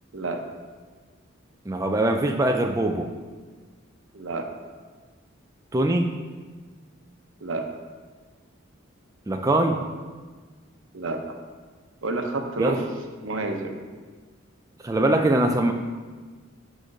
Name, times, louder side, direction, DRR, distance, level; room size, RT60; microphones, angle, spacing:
voice 1, 0.1-0.4 4.1-4.5 7.4-7.7 10.9-11.2 12.0-12.8 13.2-13.8, right 3 dB, 80° right, 4 dB, 0.9 m, -29 dB
voice 2, 1.7-3.1 5.7-6.2 9.3-9.8 12.6-12.8 14.8-15.7, right 1 dB, 15° right, 4 dB, 0.4 m, -22 dB
6.2 x 5.1 x 6.5 m, 1.4 s
head